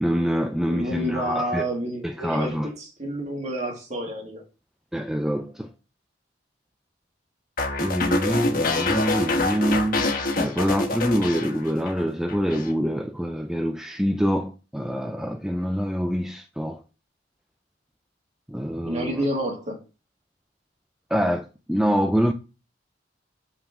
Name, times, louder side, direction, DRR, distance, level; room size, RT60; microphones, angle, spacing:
voice 1, 0.0-1.6 2.0-2.7 4.9-5.7 7.8-16.8 18.5-19.2 21.1-22.3, equal, 5° right, 0.4 m, -25 dB
voice 2, 0.7-4.4 18.8-19.8, equal, 40° right, 2.2 m, -29 dB
sound 1, 7.6-12.0 12.3-12.7, left 2 dB, 50° left, 1.2 m, -26 dB
7.1 x 5.7 x 3.6 m
head